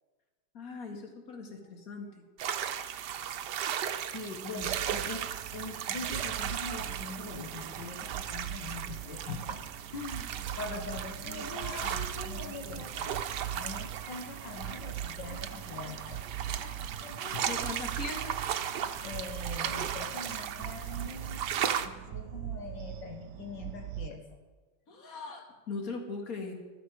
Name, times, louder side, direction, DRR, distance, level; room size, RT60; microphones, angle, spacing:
voice 1, 0.5-2.1 17.5-18.4 24.9-26.5, left 3 dB, 50° left, 3 dB, 2.4 m, -40 dB
sound 1, 2.4-21.9, right 9 dB, 70° right, 1.3 m, -36 dB
voice 2, 4.1-9.6 9.9-17.6 19.0-24.2, left 4 dB, 80° left, 3 dB, 2.0 m, -43 dB
sound 2, 4.6-24.1, right 11 dB, 85° right, 0.6 m, -42 dB
14.5 x 13.5 x 4.8 m, 1.3 s
omnidirectional pair, 1.9 m